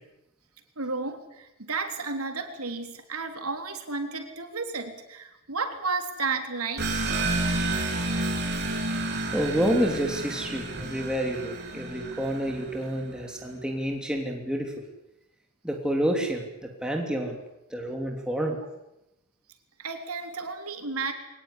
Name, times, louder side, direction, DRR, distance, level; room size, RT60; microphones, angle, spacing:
voice 1, 0.8-6.9 19.8-21.1, right 4 dB, 90° right, 5 dB, 3.5 m, -32 dB
sound 1, 6.8-13.0, right 2 dB, 55° right, 4.9 m, -30 dB
voice 2, 9.3-14.7 15.6-17.4 17.7-18.6, equal, 5° right, 1 dB, 3.1 m, -29 dB
22.5 x 19.5 x 9.9 m, 0.89 s
head